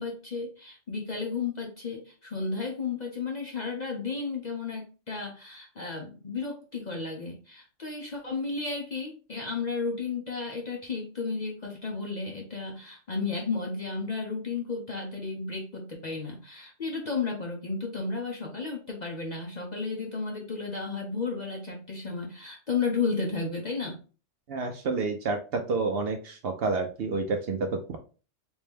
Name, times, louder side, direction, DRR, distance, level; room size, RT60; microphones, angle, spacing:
voice 1, 0.0-24.0, left 4 dB, 45° left, 0 dB, 0.6 m, -33 dB
voice 2, 24.5-28.0, right 3 dB, 60° right, 4 dB, 0.7 m, -29 dB
3.0 x 2.6 x 3.4 m, 0.36 s
omnidirectional pair, 1.3 m